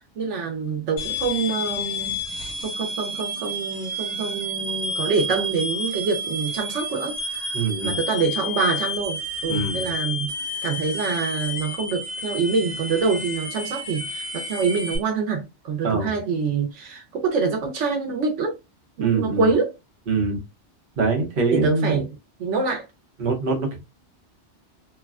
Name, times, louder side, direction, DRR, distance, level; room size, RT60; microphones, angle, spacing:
voice 1, 0.2-2.2 2.6-7.6 7.8-10.3 10.6-18.5 19.0-19.7 21.5-22.1 22.4-22.8, right 4 dB, 80° right, 1.1 m, -25 dB
sound 1, 1.0-15.0, left 1 dB, 75° left, 1.5 m, -30 dB
voice 2, 7.5-8.0 9.5-9.9 15.8-16.2 19.0-19.5 20.1-20.4 21.0-22.0 23.2-23.9, right 4 dB, 50° right, 1.0 m, -24 dB
3.2 x 2.2 x 2.3 m
omnidirectional pair, 1.2 m